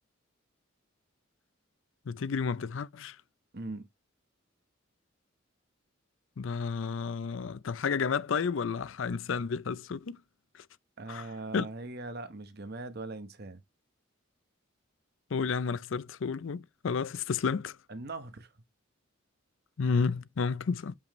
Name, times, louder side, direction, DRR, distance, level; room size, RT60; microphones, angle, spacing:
voice 1, 2.1-3.2 6.4-10.2 11.1-11.3 11.5-11.7 15.3-17.8 19.8-21.0, left 5 dB, 65° left, 0.5 m, -31 dB
voice 2, 3.5-3.9 11.0-13.6 17.9-18.5, right 2 dB, 50° right, 0.9 m, -40 dB
6.9 x 5.5 x 3.1 m
head